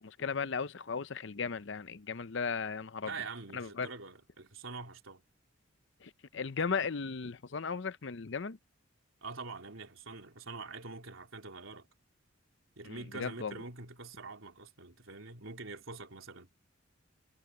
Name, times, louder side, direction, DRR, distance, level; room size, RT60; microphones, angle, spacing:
voice 1, 0.0-3.1 3.5-3.9 6.0-8.6 12.8-13.6, left 5 dB, 60° left, 0.6 m, -36 dB
voice 2, 3.0-5.2 9.2-11.9 12.8-16.5, right 3 dB, 75° right, 3.4 m, -45 dB
head